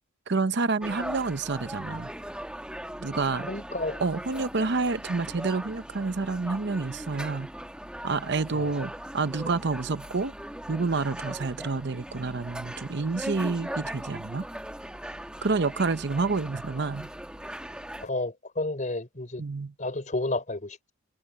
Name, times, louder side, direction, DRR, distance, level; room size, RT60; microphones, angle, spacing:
voice 1, 0.3-2.1 3.0-3.5 4.0-7.5 8.0-10.3 10.7-14.5 15.4-17.1 19.4-19.7, right 4 dB, 60° right, 0.8 m, -28 dB
sound 1, 0.8-18.1, right 1 dB, 5° right, 1.2 m, -39 dB
voice 2, 3.5-4.0 8.5-8.7 18.0-19.4 19.8-20.9, left 2 dB, 40° left, 3.9 m, -31 dB
head